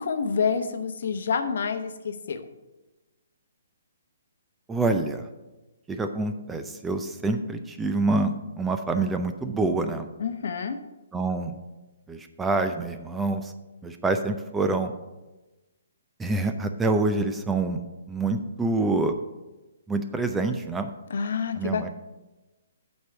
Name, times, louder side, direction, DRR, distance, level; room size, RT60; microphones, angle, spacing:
voice 1, 0.0-2.5 10.2-10.8 21.1-21.9, left 6 dB, 65° left, 8 dB, 0.9 m, -28 dB
voice 2, 4.7-5.3 5.9-10.1 11.1-11.6 12.1-13.5 13.8-14.9 16.2-19.2 19.9-20.9 21.5-21.9, right 3 dB, 10° right, 7 dB, 0.5 m, -26 dB
8.1 x 4.6 x 6.7 m, 1.1 s
hypercardioid pair, 150°, 0 cm